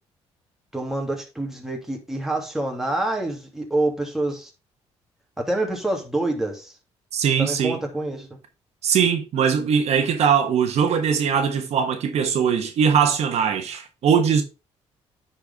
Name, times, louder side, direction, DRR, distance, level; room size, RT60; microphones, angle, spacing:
voice 1, 0.7-4.5 5.4-6.7 7.4-8.3, right 2 dB, 5° right, 2.5 m, -27 dB
voice 2, 7.1-7.8 8.8-14.4, right 7 dB, 70° right, 1.3 m, -21 dB
9.6 x 4.6 x 3.5 m
cardioid pair, 85°, 11 cm